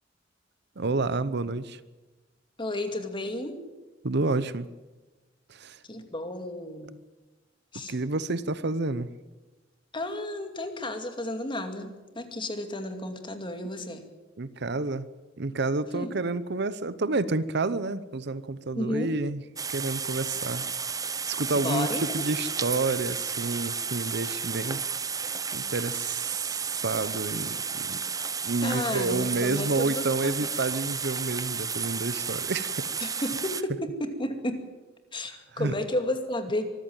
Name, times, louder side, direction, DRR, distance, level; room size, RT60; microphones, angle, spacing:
voice 1, 0.8-1.8 4.0-4.7 5.5-5.8 7.9-9.1 14.4-15.1 15.4-19.4 19.7-20.7 21.3-24.8 25.2-28.0 28.4-32.9 35.5-35.7, right 3 dB, 60° right, 16 dB, 0.8 m, -29 dB
voice 2, 2.6-3.6 5.8-6.9 7.7-7.9 9.9-14.0 15.9-16.2 18.7-19.1 21.5-22.3 28.6-30.4 33.0-34.6 35.1-36.6, left 1 dB, 25° left, 6 dB, 2.5 m, -32 dB
sound 1, 19.6-33.6, right 6 dB, 20° right, 0.7 m, -32 dB
24.5 x 14.5 x 9.0 m, 1.2 s
head